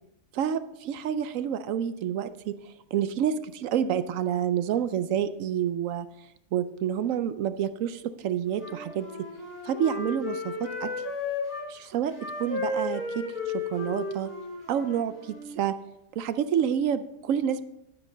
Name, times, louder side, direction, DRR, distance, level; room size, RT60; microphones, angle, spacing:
voice 1, 0.3-2.6 2.9-6.1 6.5-9.1 9.6-10.9 11.7-13.2 13.5-14.3 14.7-15.8 16.2-17.6, right 9 dB, 70° right, 12 dB, 0.9 m, -28 dB
Wind instrument woodwind instrument, 8.5-11.7 12.1-15.6, left 3 dB, 75° left, 4.2 m, -34 dB
9.6 x 9.0 x 3.8 m, 0.85 s
omnidirectional pair, 1.5 m